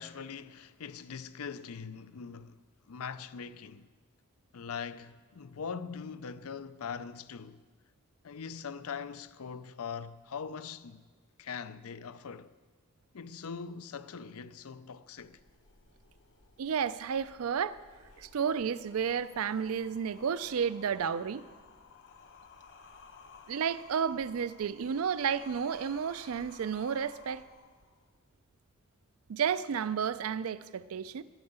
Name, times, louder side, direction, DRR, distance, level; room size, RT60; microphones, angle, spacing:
voice 1, 0.0-2.6 2.9-3.9 4.5-7.6 8.2-11.0 11.4-12.5 13.1-15.4, left 6 dB, 80° left, 0.5 m, -42 dB
sound 1, 15.2-28.2, left 4 dB, 60° left, 0.9 m, -56 dB
voice 2, 16.6-17.8 18.2-21.4 23.5-27.5 29.3-31.2, right 7 dB, 75° right, 0.4 m, -32 dB
12.5 x 8.9 x 8.0 m
head